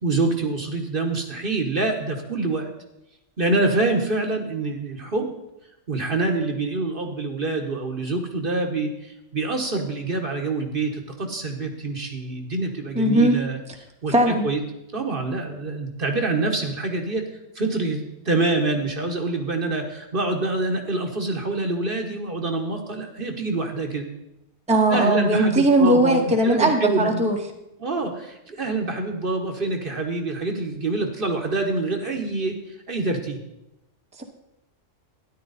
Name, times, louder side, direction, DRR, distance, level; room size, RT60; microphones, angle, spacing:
voice 1, 0.0-2.7 3.4-5.3 5.9-13.6 14.0-14.6 14.9-17.3 17.5-24.1 24.9-27.2 27.8-33.4, right 2 dB, 45° right, 3 dB, 1.3 m, -26 dB
voice 2, 12.9-13.4 14.1-14.5 24.7-27.4 34.2-34.3, right 1 dB, 5° right, 2 dB, 1.1 m, -19 dB
13.0 x 10.5 x 4.1 m, 0.89 s
omnidirectional pair, 1.3 m